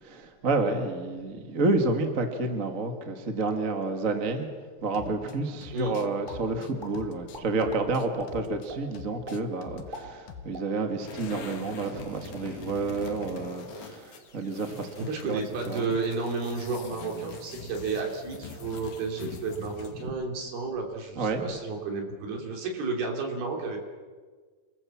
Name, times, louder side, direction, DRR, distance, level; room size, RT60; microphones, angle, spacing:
voice 1, 0.0-4.5 4.8-14.9 15.2-15.4 15.7-15.8 20.0-20.1 21.2-21.5, right 3 dB, 30° right, 5 dB, 1.7 m, -29 dB
sound 1, 4.9-5.3 5.6-8.7 8.9-10.0 10.3-10.5, left 7 dB, 70° left, 2.8 m, -46 dB
sound 2, 5.8-6.4 6.8-6.9 7.3-7.8 8.2-8.3 8.7-8.8 9.2-9.4 9.8-11.0 11.2-11.4 11.8-12.1, right 1 dB, 15° right, 4.3 m, -42 dB
sound 3, 11.0-20.1, left 3 dB, 55° left, 3.4 m, -43 dB
voice 2, 15.0-23.8, right 4 dB, 90° right, 2 dB, 5.2 m, -32 dB
27.5 x 22.5 x 7.3 m, 1.5 s
omnidirectional pair, 4.3 m